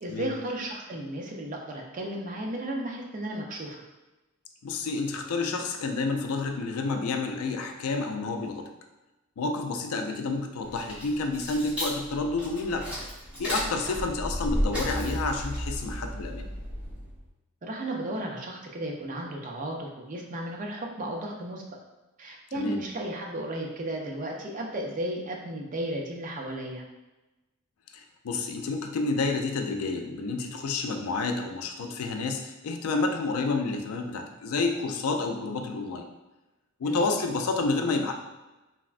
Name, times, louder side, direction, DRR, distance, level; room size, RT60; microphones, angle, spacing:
voice 1, 0.0-3.8 13.9-14.0 17.6-21.6 22.2-26.8 36.8-37.1, right 1 dB, 35° right, 0 dB, 0.4 m, -34 dB
voice 2, 4.6-8.7 9.4-13.0 13.4-16.5 22.5-22.8 27.9-36.1 36.8-38.1, left 3 dB, 80° left, 5 dB, 0.4 m, -29 dB
sound 1, 10.6-17.2, equal, 5° right, 0.9 m, -33 dB
3.3 x 2.1 x 2.4 m, 1.1 s
head